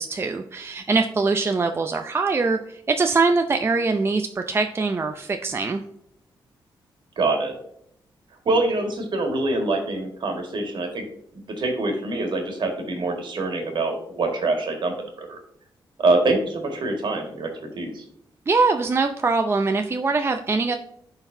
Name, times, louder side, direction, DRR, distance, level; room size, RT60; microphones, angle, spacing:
voice 1, 0.0-2.6 2.9-5.8 18.5-20.8, right 4 dB, 30° right, 5 dB, 0.5 m, -22 dB
voice 2, 7.2-7.5 8.5-11.1 11.5-15.4 16.0-18.0, right 2 dB, 65° right, 3 dB, 1.9 m, -25 dB
11.5 x 3.9 x 2.7 m, 0.72 s
cardioid pair, 90°, 9 cm